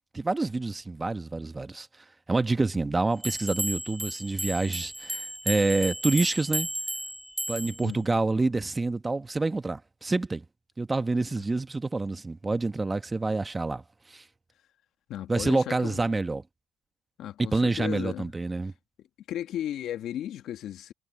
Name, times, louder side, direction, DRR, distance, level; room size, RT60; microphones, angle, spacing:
voice 1, 0.1-1.9 2.3-6.7 7.5-10.4 10.8-13.8 14.1-14.2 15.3-16.4 17.5-18.7, right 3 dB, 20° right, 1.4 m, -27 dB
sound 1, 3.2-7.9, equal, 5° right, 3.2 m, -33 dB
voice 2, 15.1-16.0 17.2-18.3 18.6-18.7 19.0-20.9, left 11 dB, 70° left, 1.6 m, -35 dB
supercardioid pair, 75°, 0 cm